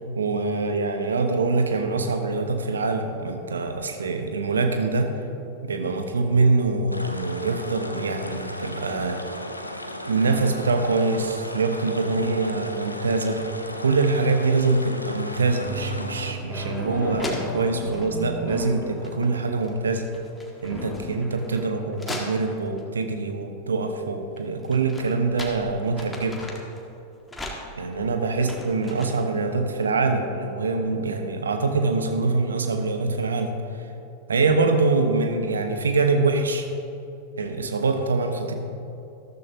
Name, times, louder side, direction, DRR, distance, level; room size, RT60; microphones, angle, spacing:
voice 1, 0.1-5.1 5.6-9.2 10.0-13.4 13.8-20.1 20.6-26.5 27.8-33.5 34.3-36.7 37.4-38.5, right 3 dB, 70° right, 6 dB, 1.1 m, -24 dB
sound 1, 6.9-16.3, left 1 dB, 85° left, 0.7 m, -36 dB
sound 2, 15.6-19.6 20.7-21.0, equal, 25° left, 2.9 m, -34 dB
sound 3, 16.7-16.8 17.2-18.2 18.9-19.4 19.6-22.8 24.4-26.8 27.3-29.4, left 1 dB, 10° left, 1.6 m, -38 dB
13.5 x 13.5 x 2.8 m, 2.8 s
figure-of-eight pair, 90°, 0 cm